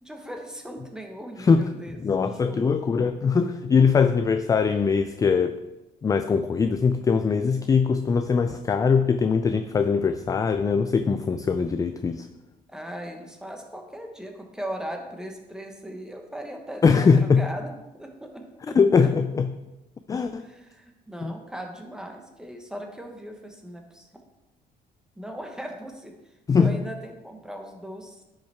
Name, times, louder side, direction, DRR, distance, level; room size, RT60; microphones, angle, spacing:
voice 1, 0.0-2.7 12.7-19.1 20.4-24.2 25.2-28.2, equal, 5° right, 3 dB, 1.2 m, -38 dB
voice 2, 2.0-5.6 6.0-12.3 16.8-17.4 18.8-19.5 20.1-20.4 21.2-21.3 26.5-26.7, left 5 dB, 20° left, 9 dB, 0.3 m, -21 dB
10.5 x 5.5 x 3.5 m, 1.0 s
cardioid pair, 110°, 17 cm